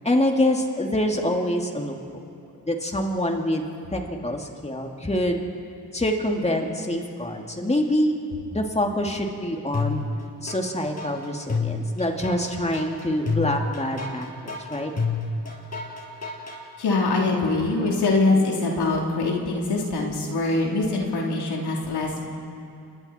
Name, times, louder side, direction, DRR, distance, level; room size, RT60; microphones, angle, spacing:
voice 1, 0.0-1.9 2.3-2.4 2.7-3.6 3.9-5.4 5.9-8.2 8.5-10.0 10.4-14.9, left 1 dB, 15° left, 2 dB, 2.4 m, -25 dB
sound 1, 9.7-10.6 11.0-16.6, left 4 dB, 40° left, 5.9 m, -28 dB
voice 2, 16.8-22.3, left 3 dB, 90° left, -2 dB, 3.5 m, -23 dB
28.5 x 23.0 x 4.4 m, 2.5 s
cardioid pair, 70°, 39 cm